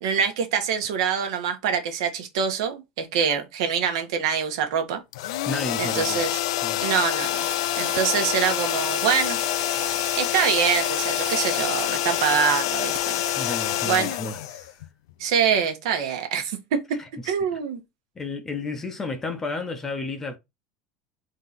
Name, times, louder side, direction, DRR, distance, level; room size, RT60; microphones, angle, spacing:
voice 1, 0.0-5.0 5.8-6.4 6.8-7.5 7.8-9.4 10.2-13.2 13.8-14.2 15.2-16.8 17.2-17.8, right 7 dB, 75° right, 1.1 m, -25 dB
sound 1, 5.1-15.1, left 14 dB, 85° left, 0.4 m, -26 dB
voice 2, 5.4-6.3 6.6-6.9 13.4-14.4 17.0-17.3 18.2-20.4, left 3 dB, 15° left, 0.5 m, -32 dB
sound 2, 7.2-14.1, right 7 dB, 35° right, 0.8 m, -39 dB
3.8 x 2.8 x 3.9 m
cardioid pair, 175°, 3 cm